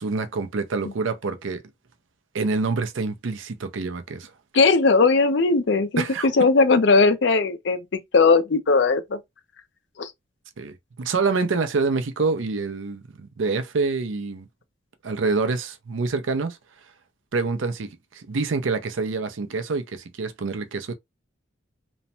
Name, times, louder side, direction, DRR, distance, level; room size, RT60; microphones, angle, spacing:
voice 1, 0.0-1.6 2.3-4.3 6.0-6.3 10.6-14.5 15.0-16.6 17.3-20.9, right 4 dB, 85° right, 0.6 m, -26 dB
voice 2, 4.5-9.2 10.0-10.1, left 4 dB, 65° left, 0.5 m, -19 dB
3.1 x 2.1 x 2.7 m
head